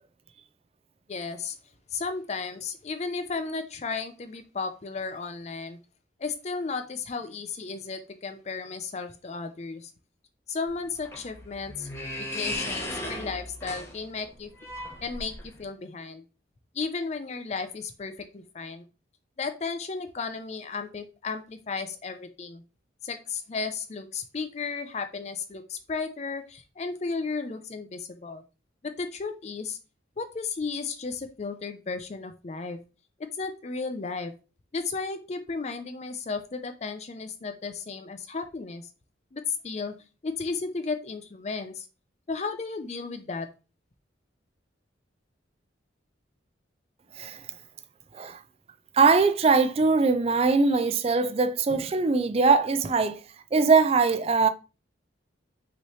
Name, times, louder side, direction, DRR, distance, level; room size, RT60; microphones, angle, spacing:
voice 1, 1.1-1.6 1.9-5.8 6.2-9.9 10.5-11.9 12.2-14.5 15.0-16.2 16.7-18.8 19.4-22.6 23.0-28.4 28.8-29.8 30.2-32.8 33.4-34.3 34.7-38.9 39.3-39.9 40.2-41.9 42.3-43.5, left 4 dB, 35° left, 0.4 m, -34 dB
sound 1, 10.7-15.6, left 1 dB, 15° left, 0.9 m, -36 dB
voice 2, 48.9-53.2 53.5-54.5, right 4 dB, 30° right, 0.3 m, -21 dB
5.5 x 3.1 x 3.1 m
head